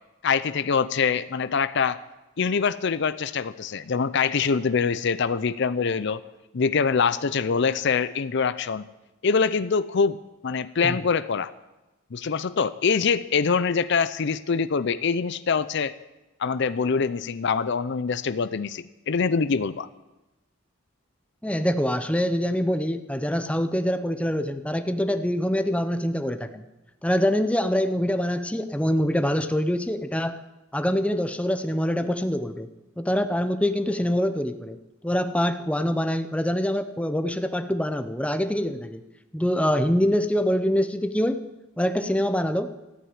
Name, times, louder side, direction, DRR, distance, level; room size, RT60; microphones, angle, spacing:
voice 1, 0.2-2.0 2.4-6.2 6.5-8.9 9.2-10.2 10.4-11.5 12.1-15.9 16.4-19.9, left 5 dB, 55° left, 15 dB, 0.5 m, -24 dB
voice 2, 21.4-26.6 27.0-30.4 30.7-32.7 33.0-34.8 35.0-39.0 39.3-41.4 41.8-42.7, equal, 5° left, 9 dB, 0.7 m, -25 dB
14.0 x 9.1 x 9.6 m, 1.0 s
head